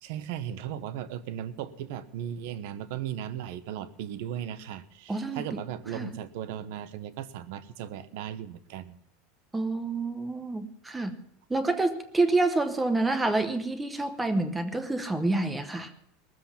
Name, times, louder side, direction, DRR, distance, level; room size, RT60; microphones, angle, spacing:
voice 1, 0.0-9.0, right 10 dB, 60° right, 13 dB, 1.0 m, -37 dB
voice 2, 5.1-5.6 5.9-6.1 9.5-11.2 11.5-15.9, right 2 dB, 5° right, 9 dB, 0.9 m, -28 dB
20.0 x 7.6 x 5.7 m, 0.78 s
supercardioid pair, 180°, 0 cm